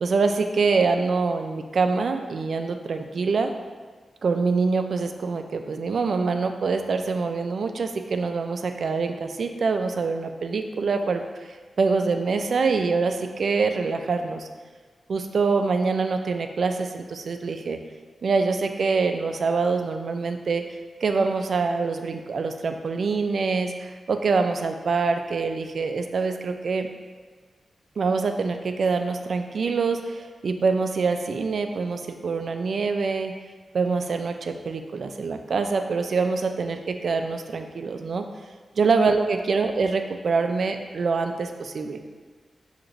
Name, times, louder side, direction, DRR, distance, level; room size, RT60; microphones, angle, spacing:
voice 1, 0.0-3.5 4.2-14.5 15.1-17.8 18.2-20.6 21.0-26.9 28.0-33.4 33.7-38.2 38.8-42.0, right 4 dB, 60° right, 6 dB, 0.3 m, -25 dB
6.4 x 2.9 x 2.6 m, 1.5 s
wide cardioid pair, 135°, 0 cm